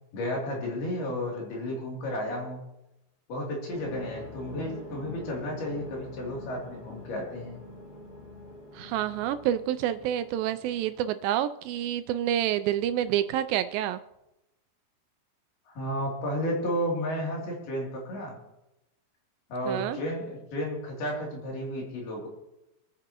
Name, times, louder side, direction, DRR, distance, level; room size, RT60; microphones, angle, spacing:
voice 1, 0.1-2.6 3.3-7.6 15.7-18.4 19.5-22.3, equal, 80° left, -2 dB, 4.9 m, -32 dB
sound 1, 3.7-11.1, left 1 dB, 15° left, 3.2 m, -45 dB
voice 2, 8.7-14.0 19.7-20.0, right 11 dB, 80° right, 11 dB, 2.2 m, -28 dB
24.5 x 9.8 x 2.9 m, 0.91 s
omnidirectional pair, 4.3 m